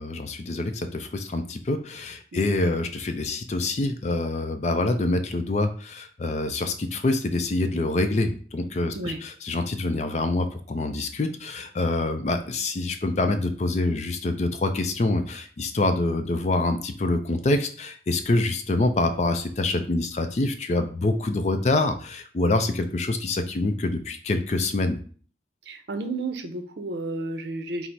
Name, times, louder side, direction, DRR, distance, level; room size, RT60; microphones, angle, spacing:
voice 1, 0.0-25.0, left 2 dB, 40° left, 8 dB, 0.4 m, -26 dB
voice 2, 25.7-27.9, right 2 dB, 70° right, 6 dB, 0.6 m, -32 dB
4.0 x 2.0 x 4.4 m, 0.43 s
head